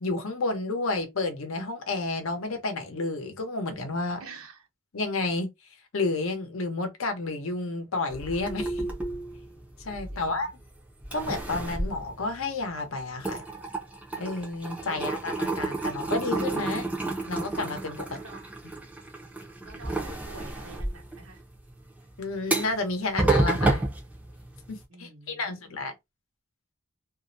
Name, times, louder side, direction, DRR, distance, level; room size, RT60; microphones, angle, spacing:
voice 1, 0.0-4.2 4.9-5.5 5.9-8.8 9.8-10.5 11.1-13.4 14.2-16.9 17.3-18.2 22.2-23.8 24.7-25.9, left 3 dB, 75° left, 0.7 m, -31 dB
voice 2, 4.2-4.7 8.6-8.8 10.1-10.5 18.0-18.5 19.6-21.4 24.9-25.8, right 3 dB, 85° right, 0.8 m, -48 dB
sound 1, 8.1-10.6 11.0-12.8 13.1-24.8, right 2 dB, 5° right, 0.4 m, -31 dB
2.4 x 2.0 x 2.6 m
head